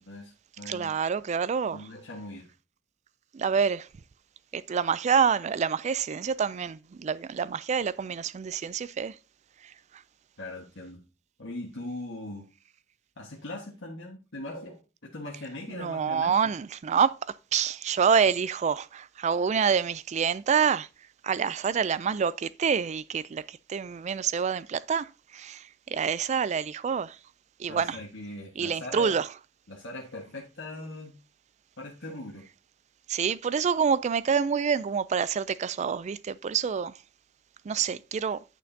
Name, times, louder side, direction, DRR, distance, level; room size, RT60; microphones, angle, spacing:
voice 1, 0.0-0.9 1.7-2.5 10.4-11.0 11.4-12.5 13.2-16.4 27.7-29.2 29.7-31.2 31.8-32.4, left 2 dB, 70° left, 1.4 m, -40 dB
voice 2, 0.7-1.8 3.3-3.9 4.5-9.2 9.6-9.7 15.8-20.9 21.2-27.2 27.6-28.0 28.6-29.3 33.1-36.9 37.7-38.4, right 6 dB, 35° right, 0.3 m, -27 dB
9.1 x 6.4 x 2.7 m
head